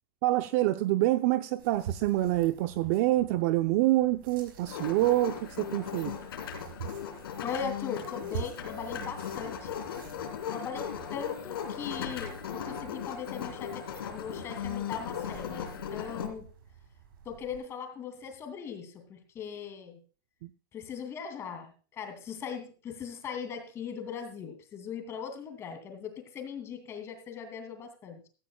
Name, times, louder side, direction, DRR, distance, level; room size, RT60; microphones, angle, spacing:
voice 1, 0.2-6.1 20.4-20.5, right 16 dB, 45° right, 0.6 m, -26 dB
sound 1, 1.6-17.6, right 8 dB, 70° right, 5.4 m, -47 dB
sound 2, 4.7-16.3, left 8 dB, 85° left, 3.5 m, -37 dB
voice 2, 7.4-9.8 10.5-16.5 17.2-20.0 20.7-28.3, left 7 dB, 20° left, 2.6 m, -39 dB
16.0 x 14.0 x 2.3 m
supercardioid pair, 155°, 12 cm